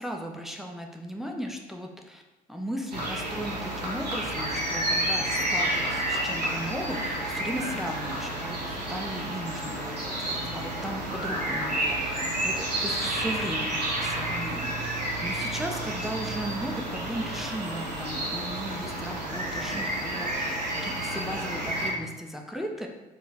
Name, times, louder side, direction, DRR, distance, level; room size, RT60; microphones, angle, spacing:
voice 1, 0.0-2.2 2.5-22.9, equal, ahead, 2 dB, 0.4 m, -36 dB
sound 1, 2.9-21.9, right 1 dB, 90° right, 0.5 m, -30 dB
3.6 x 2.5 x 3.4 m, 1.1 s
figure-of-eight pair, 40°, 20 cm